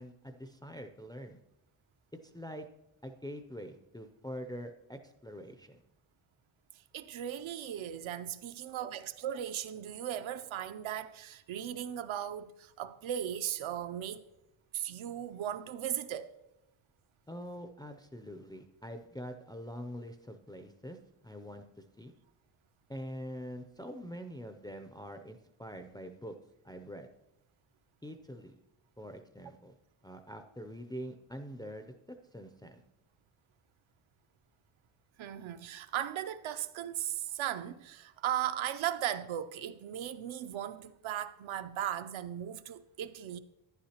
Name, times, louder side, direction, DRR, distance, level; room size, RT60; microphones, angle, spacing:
voice 1, 0.0-1.4 2.2-2.7 3.0-5.8 17.3-21.0 21.2-22.1 22.9-26.4 26.6-27.1 28.0-28.6 29.0-29.8 30.0-32.8, equal, 10° left, 0.4 m, -44 dB
voice 2, 6.9-14.2 14.7-16.3 35.2-43.4, right 11 dB, 70° right, 0.6 m, -37 dB
11.5 x 9.7 x 2.9 m
wide cardioid pair, 135°, 48 cm